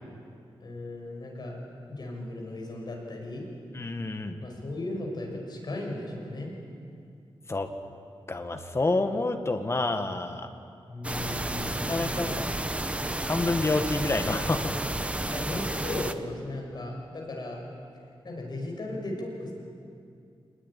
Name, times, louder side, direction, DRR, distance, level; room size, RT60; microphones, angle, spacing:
voice 1, 0.6-1.6 1.9-3.4 4.4-6.5 10.9-12.4 15.3-17.6 18.2-19.5, left 2 dB, 45° left, 0 dB, 5.9 m, -36 dB
voice 2, 3.7-4.4 7.5-7.7 8.3-10.5 11.8-12.5 13.1-14.7 15.0-15.1, left 2 dB, 25° left, 6 dB, 1.6 m, -28 dB
sound 1, 11.0-16.1, right 1 dB, 10° right, 0.9 m, -31 dB
24.5 x 20.5 x 10.0 m, 2.5 s
wide cardioid pair, 175°, 10 cm